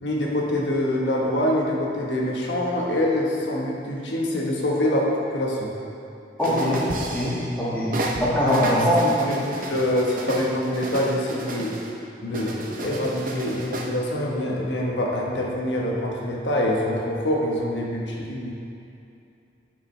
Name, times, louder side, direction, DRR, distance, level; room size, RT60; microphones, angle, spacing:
voice 1, 0.0-5.7 6.5-6.7 9.0-11.8 12.2-18.5, left 1 dB, 85° left, -3 dB, 1.2 m, -25 dB
voice 2, 6.4-7.9 8.2-9.0, equal, 10° left, -9 dB, 1.7 m, -22 dB
sound 1, 6.4-7.6 7.9-11.9 12.3-13.9, right 2 dB, 45° right, 0.7 m, -32 dB
11.5 x 5.9 x 3.3 m, 2.6 s
head